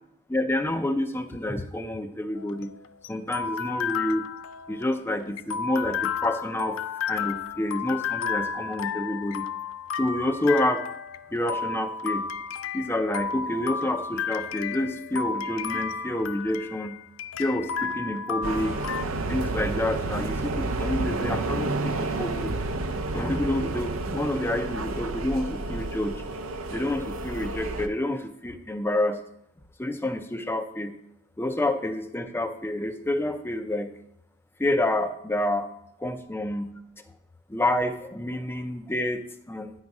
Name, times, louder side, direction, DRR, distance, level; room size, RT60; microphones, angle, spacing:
voice 1, 0.3-2.7 3.1-4.2 4.7-6.8 7.1-9.5 10.0-10.8 11.3-12.3 12.7-17.0 17.4-18.8 19.3-22.6 23.1-26.2 26.7-29.2 29.8-30.9 31.4-33.9 34.6-35.7 36.0-36.7 37.5-39.7, left 1 dB, 10° left, 8 dB, 0.4 m, -28 dB
sound 1, 2.4-19.0, left 6 dB, 80° left, 0.4 m, -32 dB
sound 2, 18.4-27.9, right 2 dB, 80° right, 0.6 m, -30 dB
9.7 x 4.0 x 4.8 m, 0.77 s
head